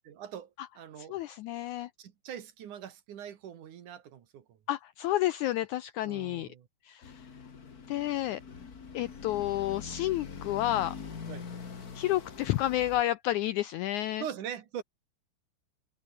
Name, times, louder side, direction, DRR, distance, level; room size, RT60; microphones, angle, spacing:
voice 1, 0.0-0.5 0.8-1.2 2.0-4.6 6.0-6.7 11.3-11.5 14.2-14.8, right 9 dB, 60° right, 3.1 m, -42 dB
voice 2, 1.0-1.9 4.7-6.5 6.9-7.3 7.9-8.4 8.9-11.0 12.0-14.3, left 14 dB, 85° left, 1.7 m, -30 dB
sound 1, 7.0-13.0, left 5 dB, 35° left, 1.7 m, -44 dB
omnidirectional pair, 4.1 m